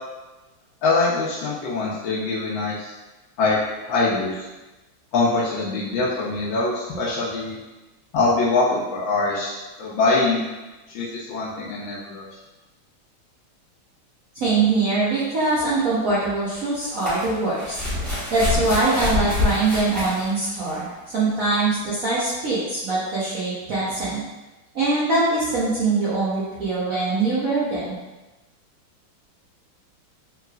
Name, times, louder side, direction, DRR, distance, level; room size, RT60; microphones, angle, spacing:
voice 1, 0.8-2.9 3.4-3.6 3.9-4.4 5.1-7.6 8.1-10.4 10.9-12.3, left 3 dB, 70° left, -7 dB, 1.3 m, -23 dB
voice 2, 14.3-17.8 18.3-24.2 24.7-28.0, right 3 dB, 55° right, -10 dB, 1.0 m, -23 dB
sound 1, 14.5-14.6 16.6-20.9 21.8-21.9, left 2 dB, ahead, 0.9 m, -26 dB
4.7 x 3.1 x 2.4 m, 1.1 s
omnidirectional pair, 2.3 m